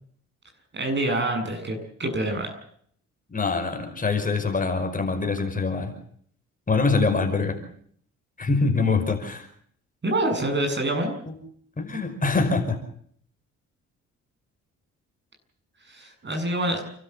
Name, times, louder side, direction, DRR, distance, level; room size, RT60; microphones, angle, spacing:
voice 1, 0.7-2.6 10.0-11.1 15.8-16.8, right 1 dB, 35° right, 4 dB, 8.0 m, -26 dB
voice 2, 3.3-5.9 6.7-7.6 8.4-9.5 11.8-12.8, left 4 dB, 25° left, 5 dB, 5.3 m, -24 dB
29.0 x 13.0 x 8.3 m, 0.64 s
cardioid pair, 90°, 30 cm